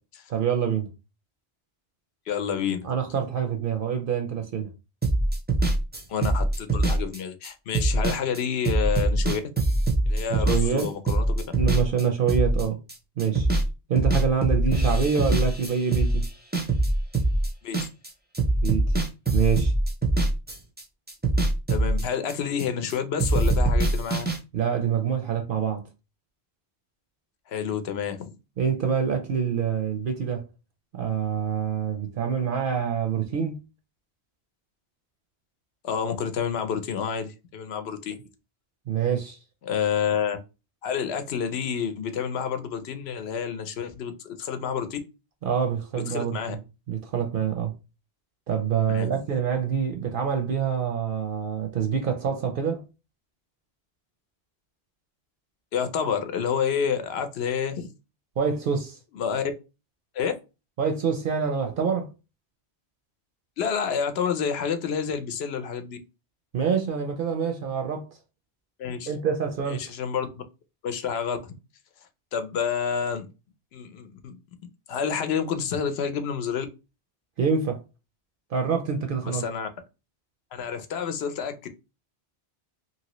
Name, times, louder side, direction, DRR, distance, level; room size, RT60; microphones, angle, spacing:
voice 1, 0.3-0.9 2.8-4.7 10.3-10.9 11.5-12.8 13.2-13.5 13.9-16.2 18.6-19.0 19.3-19.7 24.5-25.8 28.6-30.5 30.9-33.6 38.9-39.4 45.4-46.6 46.9-47.7 48.5-52.8 58.4-59.0 60.8-62.1 66.5-68.1 69.1-69.8 77.4-77.8 78.5-79.4, right 7 dB, 60° right, 0.7 m, -26 dB
voice 2, 2.3-2.8 6.1-9.4 10.1-11.4 17.6-17.9 21.7-24.3 27.5-28.3 35.8-38.1 39.6-40.4 40.8-45.0 46.1-46.6 48.9-49.1 55.7-57.9 59.1-59.4 60.1-60.3 63.6-66.0 68.8-69.1 69.6-70.4 70.8-71.4 72.3-73.3 73.7-74.3 74.9-76.7 79.2-79.7 80.5-81.7, left 7 dB, 70° left, 0.8 m, -29 dB
sound 1, 5.0-12.9 13.2-13.7 14.0-18.1 18.3-20.8 21.1-22.9 23.2-24.4, right 2 dB, 15° right, 0.3 m, -23 dB
2.9 x 2.8 x 2.9 m
omnidirectional pair, 1.1 m